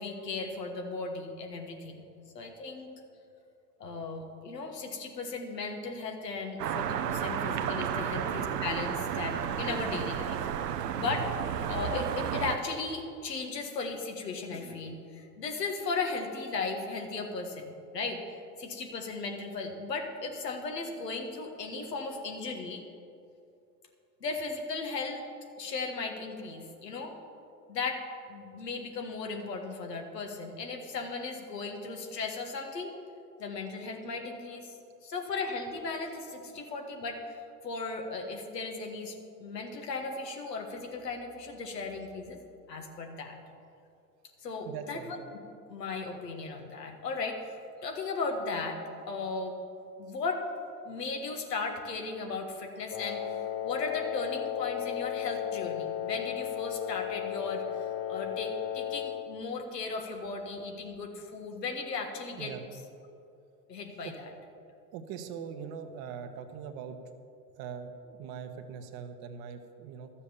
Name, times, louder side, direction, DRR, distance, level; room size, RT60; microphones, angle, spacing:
voice 1, 0.0-2.0 2.4-2.9 3.8-10.4 11.0-11.3 11.7-18.2 18.6-22.8 24.2-25.2 25.6-27.2 27.7-28.0 28.3-32.9 33.4-39.2 39.4-42.4 42.7-43.4 44.4-45.2 45.7-48.8 49.1-49.6 50.0-50.5 50.9-62.5 63.7-64.1, left 4 dB, 85° left, 3 dB, 1.7 m, -36 dB
sound 1, 6.6-12.6, right 8 dB, 80° right, 0.8 m, -32 dB
voice 2, 44.6-45.1 62.4-62.6 64.0-64.1 64.9-67.0 67.6-70.1, right 7 dB, 50° right, 6 dB, 1.3 m, -41 dB
Wind instrument woodwind instrument, 52.9-59.4, left 10 dB, 30° left, 0.7 m, -35 dB
13.0 x 7.2 x 7.1 m, 2.6 s
hypercardioid pair, 80°, 48 cm